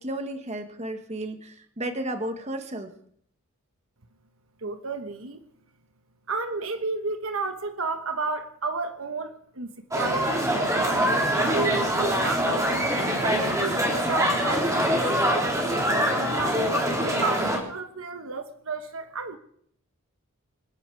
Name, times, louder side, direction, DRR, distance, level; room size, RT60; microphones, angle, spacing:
voice 1, 0.0-2.9, right 1 dB, 30° right, 1.6 m, -33 dB
voice 2, 4.6-5.4 6.3-11.1 11.3-12.9 13.2-16.6 17.0-19.4, right 4 dB, 65° right, 1.2 m, -32 dB
sound 1, 9.9-17.6, equal, 15° right, 3.4 m, -24 dB
26.0 x 10.5 x 4.8 m
head